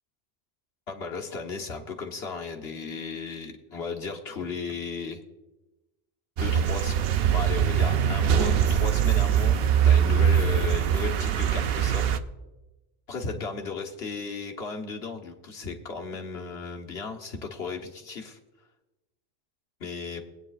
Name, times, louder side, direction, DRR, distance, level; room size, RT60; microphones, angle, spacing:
voice 1, 0.9-5.2 6.4-7.0 7.3-9.6 9.8-12.1 13.1-18.4 19.8-20.2, left 4 dB, 65° left, 2 dB, 1.4 m, -35 dB
sound 1, 6.4-12.2, right 8 dB, 65° right, 0.8 m, -22 dB
21.5 x 8.9 x 2.4 m, 1.1 s
omnidirectional pair, 1.1 m